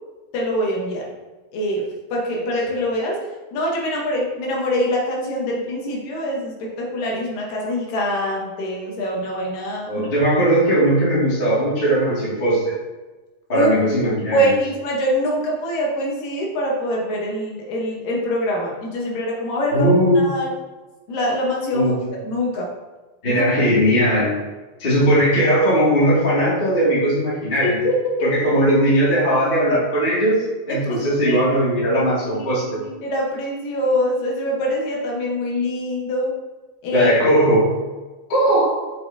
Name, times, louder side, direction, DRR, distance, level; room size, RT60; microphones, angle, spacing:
voice 1, 0.3-1.1 1.5-3.2 3.5-10.1 13.5-13.7 14.3-19.9 20.2-20.5 21.1-21.9 22.2-22.7 23.3-23.5 27.6-27.9 28.2-28.3 30.7-31.4 32.4-32.5 32.8-36.3 36.8-37.1, equal, 75° left, -2 dB, 2.7 m, -24 dB
voice 2, 9.9-12.7 13.5-14.5 19.7-20.2 21.7-22.0 23.2-24.3 24.8-27.8 28.2-32.8 36.9-37.7 38.3-38.7, right 1 dB, 20° left, -8 dB, 1.5 m, -18 dB
7.8 x 5.8 x 2.7 m, 1.2 s
omnidirectional pair, 4.0 m